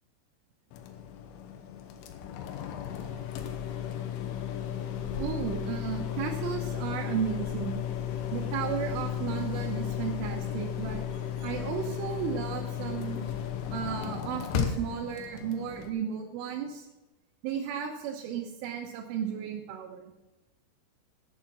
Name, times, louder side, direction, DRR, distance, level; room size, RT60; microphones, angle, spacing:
sound 1, 0.7-15.9, left 9 dB, 85° left, 3.5 m, -34 dB
voice 1, 5.2-7.8 8.3-11.0 11.4-13.3 13.7-16.9 17.4-20.0, right 8 dB, 85° right, -1 dB, 3.6 m, -34 dB
12.0 x 8.8 x 6.0 m, 1.0 s
omnidirectional pair, 5.6 m